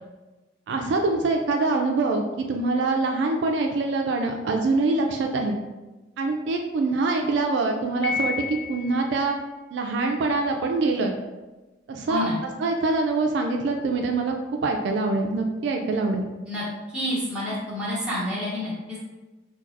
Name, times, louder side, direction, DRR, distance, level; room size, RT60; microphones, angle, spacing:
voice 1, 0.7-5.6 6.2-9.4 9.7-11.1 11.9-12.2 12.6-16.3, right 3 dB, 65° right, 2 dB, 0.3 m, -24 dB
Piano, 8.0-9.2, left 5 dB, 60° left, 0.5 m, -30 dB
voice 2, 12.1-12.4 16.4-16.6 16.9-19.0, left 1 dB, 5° right, -10 dB, 1.1 m, -28 dB
4.6 x 2.2 x 2.5 m, 1.2 s
head